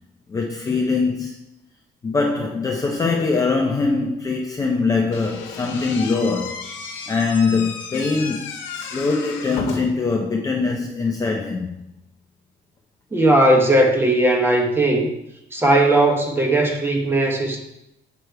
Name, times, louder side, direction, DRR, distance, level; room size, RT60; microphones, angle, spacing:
voice 1, 0.3-1.3 2.0-6.6 7.1-11.8, left 4 dB, 20° left, 0.5 m, -22 dB
Slam / Squeak, 5.1-10.1, left 5 dB, 80° left, 1.0 m, -33 dB
voice 2, 13.1-15.1 15.5-17.6, right 1 dB, 10° right, 0.9 m, -17 dB
7.9 x 3.3 x 4.5 m
cardioid pair, 160°, 20 cm